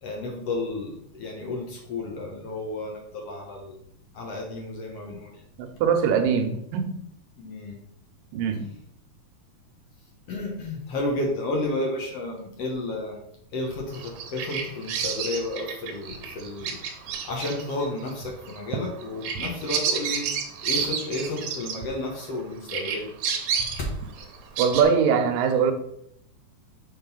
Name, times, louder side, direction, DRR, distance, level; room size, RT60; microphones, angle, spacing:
voice 1, 0.0-3.8 4.1-5.4 7.4-7.8 10.3-13.2 13.5-16.8 17.2-20.4 20.6-23.1 23.8-24.3, left 2 dB, 60° left, 0 dB, 1.9 m, -32 dB
voice 2, 5.6-6.9 8.3-8.7 24.6-25.7, right 6 dB, 85° right, 6 dB, 2.6 m, -22 dB
Bird vocalization bird call bird song, 13.9-22.4 22.7-24.8, right 6 dB, 70° right, 2.1 m, -31 dB
6.9 x 3.9 x 5.5 m, 0.72 s
omnidirectional pair, 3.8 m